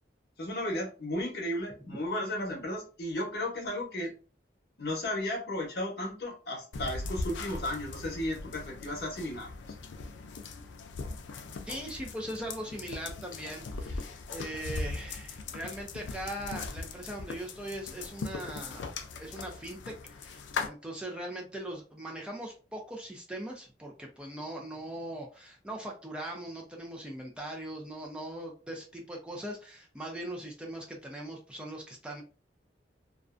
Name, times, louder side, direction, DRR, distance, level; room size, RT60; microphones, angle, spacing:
voice 1, 0.4-4.1 4.8-9.5, left 1 dB, 60° left, 0 dB, 0.8 m, -34 dB
sound 1, 6.7-20.7, left 3 dB, 85° left, 0.4 m, -40 dB
voice 2, 11.7-18.8 19.2-32.2, right 1 dB, 5° right, 0 dB, 0.4 m, -40 dB
2.4 x 2.1 x 2.4 m, 0.35 s
head